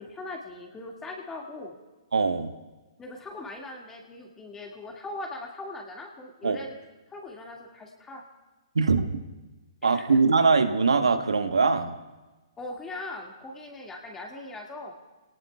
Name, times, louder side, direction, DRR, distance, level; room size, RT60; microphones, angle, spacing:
voice 1, 0.0-1.8 3.0-6.7 7.1-8.2 9.9-10.2 12.6-14.9, left 2 dB, 15° left, 0 dB, 2.1 m, -40 dB
voice 2, 2.1-2.5 6.4-6.6 8.7-9.1 9.8-11.9, right 4 dB, 80° right, 8 dB, 1.3 m, -22 dB
28.5 x 19.0 x 2.4 m, 1.2 s
figure-of-eight pair, 125°, 3 cm